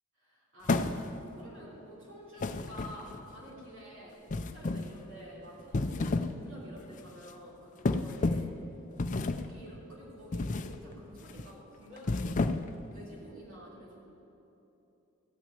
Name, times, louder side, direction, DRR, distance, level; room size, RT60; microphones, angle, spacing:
voice 1, 0.2-1.0 1.3-8.5 9.1-12.5 12.9-14.0, equal, 60° right, -6 dB, 3.3 m, -49 dB
sound 1, 0.7-1.3 2.4-3.3 4.3-5.0 5.6-6.4 6.8-7.0 7.9-8.6 9.0-9.6 10.3-10.8 11.2-11.5 12.0-12.8, left 3 dB, 35° left, 0.4 m, -31 dB
14.5 x 6.0 x 9.6 m, 3.0 s
head